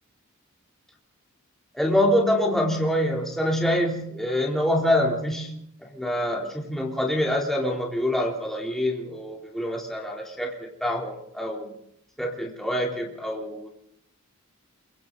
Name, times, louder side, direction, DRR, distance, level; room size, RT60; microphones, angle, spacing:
voice 1, 1.7-5.5 5.8-11.7 12.2-13.7, left 1 dB, ahead, -2 dB, 3.5 m, -25 dB
28.5 x 23.5 x 4.0 m, 0.71 s
head